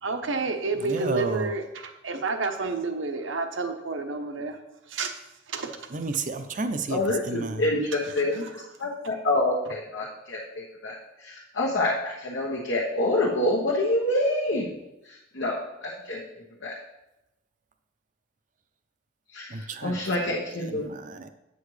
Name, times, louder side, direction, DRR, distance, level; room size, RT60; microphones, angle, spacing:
voice 1, 0.0-4.6 4.9-5.1 5.5-5.7 8.0-8.5, right 3 dB, 80° right, 7 dB, 0.9 m, -30 dB
voice 2, 0.8-1.5 5.9-7.0 7.3-7.6 19.5-19.9 20.8-21.3, right 3 dB, 40° right, 8 dB, 0.5 m, -31 dB
voice 3, 6.9-8.5 8.8-10.9 11.2-14.7 15.0-15.6 16.1-16.2 16.6-16.7 19.3-20.8, left 1 dB, 75° left, -4 dB, 1.2 m, -27 dB
8.4 x 7.5 x 3.2 m, 0.91 s
head